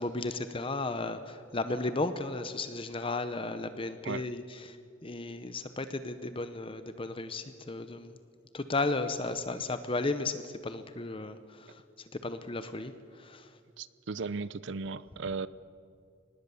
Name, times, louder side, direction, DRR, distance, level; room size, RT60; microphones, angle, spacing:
voice 1, 0.0-4.8 5.0-8.2 8.5-13.6, left 2 dB, 25° left, 11 dB, 0.8 m, -34 dB
voice 2, 13.8-15.5, right 4 dB, 65° right, 18 dB, 0.5 m, -36 dB
24.5 x 19.0 x 7.1 m, 2.3 s
head